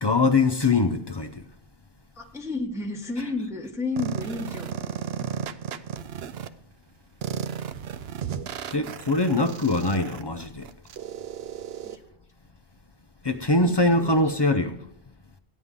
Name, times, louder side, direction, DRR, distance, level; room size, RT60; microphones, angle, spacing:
voice 1, 0.0-1.4 8.7-10.7 13.2-14.8, left 2 dB, 35° left, 0.4 m, -22 dB
voice 2, 2.2-4.7 11.8-12.1 13.6-14.1, left 3 dB, 5° right, 0.9 m, -32 dB
sound 1, 4.0-6.5 7.2-12.0, right 8 dB, 65° right, 0.8 m, -34 dB
15.0 x 9.6 x 3.7 m
omnidirectional pair, 1.2 m